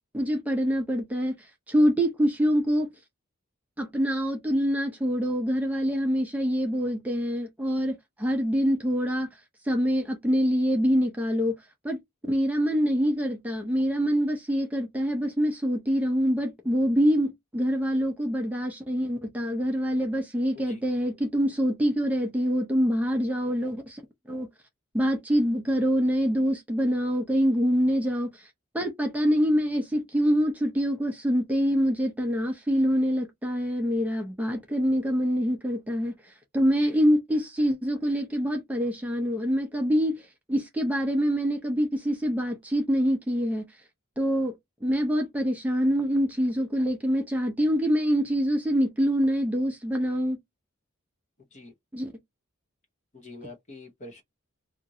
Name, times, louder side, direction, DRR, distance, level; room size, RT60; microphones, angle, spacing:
voice 1, 0.1-2.9 3.8-9.3 9.6-11.6 11.8-24.0 24.3-24.5 24.9-28.5 28.7-40.2 40.5-43.6 44.2-50.4 51.9-52.1, equal, 5° right, 0.6 m, -25 dB
voice 2, 53.2-54.2, left 2 dB, 35° left, 0.8 m, -44 dB
2.8 x 2.5 x 2.7 m
head